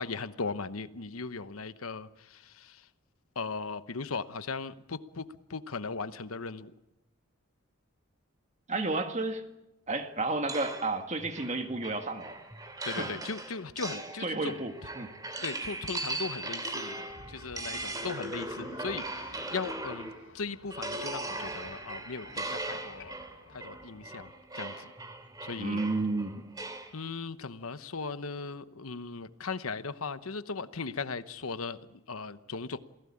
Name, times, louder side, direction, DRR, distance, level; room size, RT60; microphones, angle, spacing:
voice 1, 0.0-2.8 3.4-5.2 5.5-6.7 12.8-14.6 15.4-23.1 23.5-24.9 25.4-25.8 26.9-32.8, left 4 dB, 90° left, 12 dB, 1.0 m, -38 dB
voice 2, 8.7-9.4 9.9-12.4 13.0-13.1 14.2-15.1 25.6-26.4, right 3 dB, 35° right, 6 dB, 1.9 m, -31 dB
sound 1, 10.5-20.3 20.7-26.9, right 2 dB, 15° right, 2.9 m, -39 dB
sound 2, 17.1-24.3, left 2 dB, 70° left, 3.5 m, -54 dB
27.5 x 16.5 x 8.7 m, 0.92 s
head